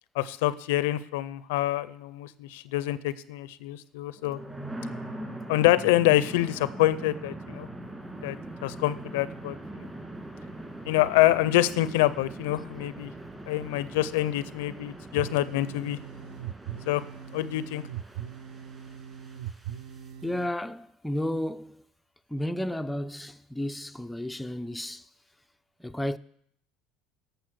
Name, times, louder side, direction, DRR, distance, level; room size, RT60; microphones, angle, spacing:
voice 1, 0.2-4.4 5.5-7.7 8.2-8.4 8.6-9.9 10.9-13.1 13.5-16.0 16.9-17.0 17.3-17.8, left 15 dB, 90° left, 0.5 m, -26 dB
sound 1, 4.1-20.1, right 1 dB, 15° right, 1.9 m, -42 dB
sound 2, 15.2-20.5, right 10 dB, 70° right, 0.6 m, -40 dB
voice 2, 20.2-21.8 22.3-25.1 25.8-26.2, left 1 dB, 5° left, 0.3 m, -32 dB
10.5 x 6.7 x 6.4 m
supercardioid pair, 110°, 0 cm